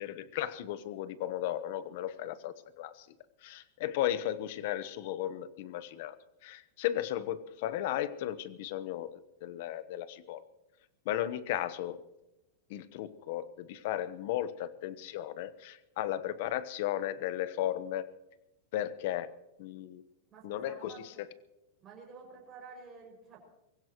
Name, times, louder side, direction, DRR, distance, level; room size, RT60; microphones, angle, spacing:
voice 1, 0.0-3.1 3.4-6.2 6.4-10.4 11.1-12.0 12.7-18.1 18.7-19.3 19.6-20.0 20.4-21.3, left 12 dB, 50° left, 14 dB, 1.0 m, -35 dB
voice 2, 20.3-21.2 21.8-23.4, right 4 dB, 20° right, -2 dB, 6.4 m, -50 dB
24.0 x 15.5 x 3.1 m, 0.91 s
supercardioid pair, 165°, 0 cm